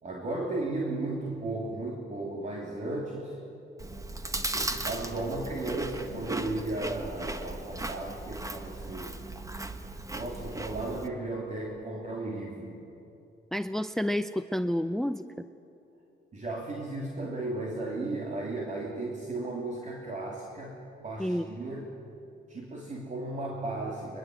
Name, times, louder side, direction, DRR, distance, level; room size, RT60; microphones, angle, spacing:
voice 1, 0.0-3.4 4.5-9.2 10.1-12.8 16.3-20.8 21.0-21.9 22.5-24.2, right 2 dB, 35° right, -2 dB, 3.1 m, -35 dB
Chewing mastication, 3.8-11.1, right 2 dB, 15° right, 1.5 m, -36 dB
voice 2, 13.5-15.4 21.2-21.5, equal, ahead, 12 dB, 0.6 m, -30 dB
22.5 x 22.0 x 7.9 m, 2.9 s
cardioid pair, 90°, 20 cm